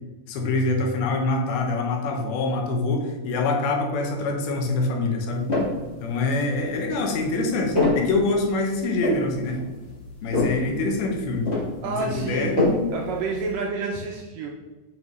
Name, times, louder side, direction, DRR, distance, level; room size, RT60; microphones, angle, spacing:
voice 1, 0.3-5.5 6.0-9.6 10.2-11.5 11.8-12.6, left 2 dB, 75° left, 2 dB, 2.6 m, -25 dB
sound 1, 5.3-5.9 6.5-13.6, left 2 dB, 50° left, 0.7 m, -27 dB
voice 2, 11.8-12.5 12.9-14.5, right 3 dB, 80° right, 0 dB, 1.9 m, -29 dB
7.6 x 5.3 x 3.1 m, 1.2 s
omnidirectional pair, 4.6 m